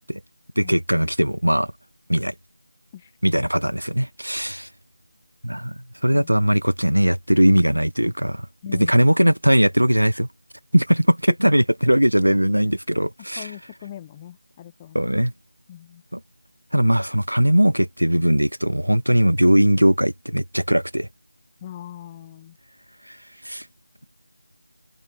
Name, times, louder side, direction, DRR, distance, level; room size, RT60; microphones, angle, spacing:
voice 1, 0.6-1.7 2.1-2.3 3.2-4.7 5.4-8.5 8.8-10.3 10.7-13.5 14.9-15.3 16.1-16.2 16.7-21.1 23.0-23.2 23.4-23.7, equal, 80° right, 0.5 m, -19 dB
voice 2, 8.6-9.0 13.4-15.1 15.7-16.0 21.6-22.6, left 11 dB, 15° left, 5.4 m, -40 dB
figure-of-eight pair, 165°, 0 cm